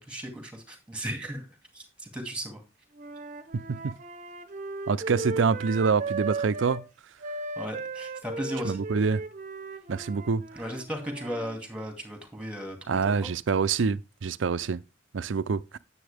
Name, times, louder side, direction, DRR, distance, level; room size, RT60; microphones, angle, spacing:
voice 1, 0.1-1.5 1.7-2.6 7.6-8.8 10.6-13.3, equal, 5° right, 2.3 m, -36 dB
Wind instrument woodwind instrument, 2.9-6.8 7.2-11.6, right 3 dB, 45° right, 0.9 m, -36 dB
voice 2, 3.5-4.0 4.9-6.9 8.6-9.2 9.9-10.4 12.9-14.8 15.1-15.8, right 5 dB, 85° right, 0.5 m, -26 dB
10.0 x 7.8 x 3.4 m
head